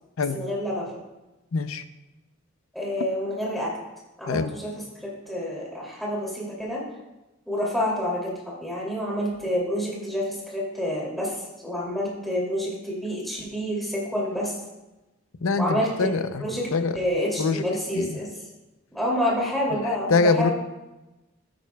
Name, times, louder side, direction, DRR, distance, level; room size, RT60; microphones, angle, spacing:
voice 1, 0.3-0.9 2.7-3.8 4.2-6.9 7.5-14.5 15.6-16.1 16.4-18.3 18.9-20.5, equal, ahead, 2.7 m, -28 dB
voice 2, 1.5-1.8 4.3-4.5 15.4-16.4 16.7-16.9 17.4-17.6 17.9-18.1 20.1-20.5, left 4 dB, 90° left, 0.6 m, -23 dB
13.0 x 9.4 x 2.3 m
head